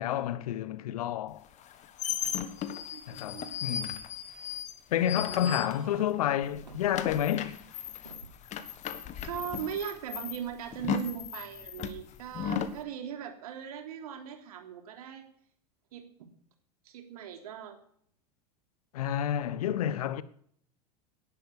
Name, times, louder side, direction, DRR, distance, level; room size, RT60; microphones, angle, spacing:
voice 1, 0.0-1.4 3.1-4.0 4.9-7.6 18.9-20.2, left 11 dB, 60° left, 1.2 m, -30 dB
sound 1, 1.5-6.2 6.4-12.8, left 8 dB, 35° left, 1.6 m, -36 dB
voice 2, 2.9-3.8 5.2-6.1 9.1-15.2 15.9-16.1 16.8-17.8, right 9 dB, 60° right, 3.3 m, -39 dB
sound 2, 3.6-4.2 4.9-5.4 6.7-6.9 8.0-8.4 9.3-9.7, right 3 dB, 85° right, 2.8 m, -50 dB
18.5 x 11.0 x 6.6 m
figure-of-eight pair, 85°, 21 cm